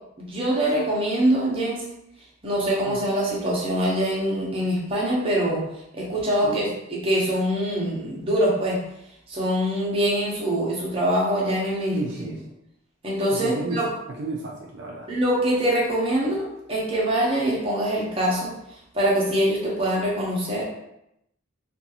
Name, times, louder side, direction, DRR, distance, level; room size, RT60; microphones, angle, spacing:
voice 1, 0.2-1.9 2.4-5.7 5.9-6.7 7.0-8.8 9.3-12.4 13.0-13.9 15.1-18.5 18.9-20.7, right 1 dB, 30° right, -5 dB, 0.7 m, -24 dB
voice 2, 11.9-12.5 13.3-15.1, right 2 dB, 60° right, -3 dB, 0.4 m, -33 dB
2.5 x 2.3 x 2.8 m, 0.81 s
head